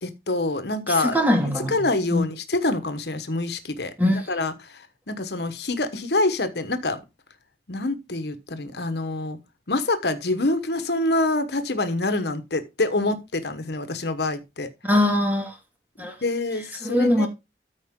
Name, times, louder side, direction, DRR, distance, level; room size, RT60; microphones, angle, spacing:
voice 1, 0.0-1.2 1.4-3.9 4.3-7.0 7.7-9.4 9.7-14.7 16.0-17.3, left 2 dB, 70° left, 1.2 m, -26 dB
voice 2, 0.9-1.8 2.1-2.2 4.0-4.3 14.8-15.6 16.0-16.1 16.8-17.3, left 1 dB, 10° right, 2.3 m, -21 dB
13.5 x 4.8 x 3.7 m
head